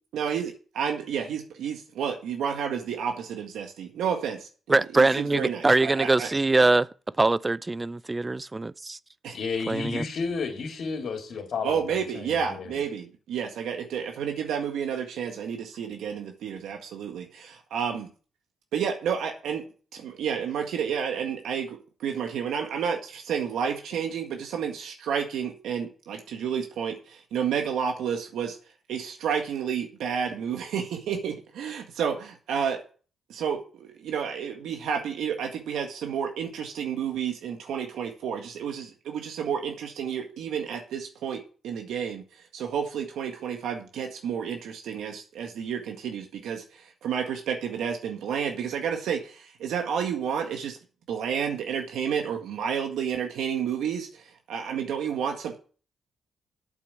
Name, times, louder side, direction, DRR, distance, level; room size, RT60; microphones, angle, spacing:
voice 1, 0.1-6.3 9.2-9.4 11.6-18.1 18.7-19.6 19.9-28.6 28.9-32.8 33.3-42.2 42.5-50.8 51.1-55.6, right 7 dB, 85° right, 1.8 m, -30 dB
voice 2, 4.7-6.8 7.2-9.0 9.7-10.0, right 2 dB, 20° right, 0.5 m, -23 dB
voice 3, 9.3-12.8, left 4 dB, 65° left, 2.9 m, -32 dB
8.4 x 8.3 x 6.8 m
cardioid pair, 85°, 0 cm